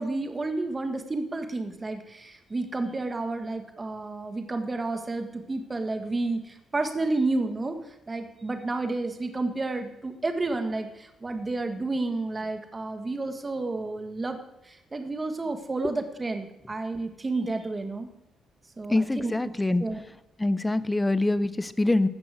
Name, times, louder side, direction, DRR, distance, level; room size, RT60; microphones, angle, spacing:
voice 1, 0.0-7.8 8.1-14.4 14.7-18.1 18.8-19.3 19.8-20.0, right 2 dB, 25° right, 6 dB, 1.7 m, -31 dB
voice 2, 18.9-19.8 20.4-22.1, left 2 dB, 15° left, 15 dB, 0.7 m, -24 dB
15.0 x 6.1 x 7.7 m, 0.89 s
cardioid pair, 90°, 0 cm